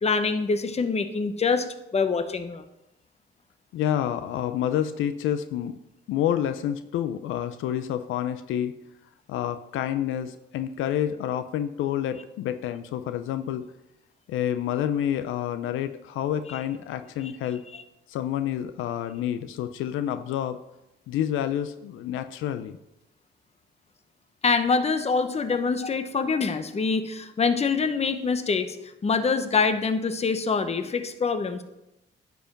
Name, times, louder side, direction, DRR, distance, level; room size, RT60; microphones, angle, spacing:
voice 1, 0.0-1.7 1.9-2.6 17.2-17.3 17.7-17.8 24.4-28.8 29.0-31.6, left 4 dB, 30° left, 9 dB, 0.9 m, -25 dB
voice 2, 3.7-5.8 6.1-8.7 9.3-13.6 14.3-17.6 18.1-20.6 21.1-22.8 25.5-25.6, left 10 dB, 85° left, 10 dB, 0.5 m, -28 dB
10.0 x 4.7 x 5.9 m, 0.90 s
cardioid pair, 90°, 20 cm